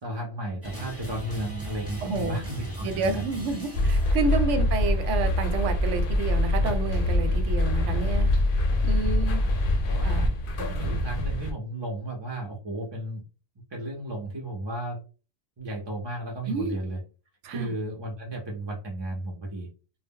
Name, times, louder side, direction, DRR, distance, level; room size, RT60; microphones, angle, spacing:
voice 1, 0.0-3.3 4.0-4.1 7.9-8.4 8.8-9.5 9.8-10.3 10.6-13.2 13.7-15.0 15.6-17.0 17.5-19.7, right 1 dB, 45° right, -1 dB, 0.3 m, -34 dB
sound 1, 0.6-4.8, right 2 dB, 15° right, 0.7 m, -38 dB
voice 2, 2.0-2.4 2.8-8.3 8.8-9.4 10.0-10.2 16.5-16.8 17.4-17.7, right 4 dB, 85° right, 8 dB, 0.9 m, -29 dB
sound 2, 3.7-11.5, left 1 dB, 60° left, 0.6 m, -24 dB
2.0 x 2.0 x 3.5 m, 0.34 s
omnidirectional pair, 1.2 m